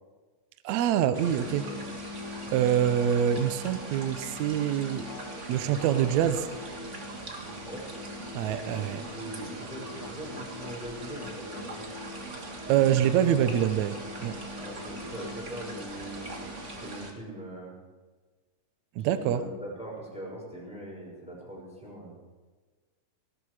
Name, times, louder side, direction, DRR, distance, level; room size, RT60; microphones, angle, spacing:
voice 1, 0.6-1.7 2.5-5.1 5.5-6.5 8.3-9.0 12.7-14.3 19.0-19.4, right 10 dB, 80° right, 11 dB, 1.6 m, -25 dB
sound 1, 1.1-17.1, right 2 dB, 65° right, 0.7 m, -41 dB
Musical instrument, 1.4-17.0, left 3 dB, 85° left, 0.8 m, -44 dB
voice 2, 8.6-11.8 14.6-17.7 19.0-22.1, right 1 dB, ahead, -4 dB, 5.9 m, -42 dB
18.5 x 15.5 x 4.9 m, 1.3 s
omnidirectional pair, 4.5 m